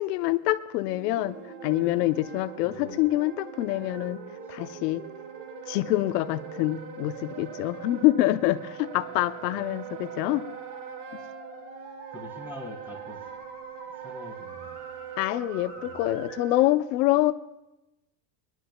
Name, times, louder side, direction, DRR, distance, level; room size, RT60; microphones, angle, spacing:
voice 1, 0.0-4.2 4.5-5.0 5.7-10.5 15.2-17.3, left 16 dB, 90° left, 12 dB, 0.8 m, -26 dB
sound 1, 0.9-16.4, right 3 dB, 45° right, 2.5 m, -45 dB
Wind instrument woodwind instrument, 1.2-16.7, right 11 dB, 75° right, 1.7 m, -43 dB
voice 2, 2.6-3.0 12.1-13.2 14.0-14.7, left 2 dB, 5° right, 1 dB, 2.9 m, -43 dB
24.5 x 11.0 x 2.3 m, 0.93 s
supercardioid pair, 125°, 46 cm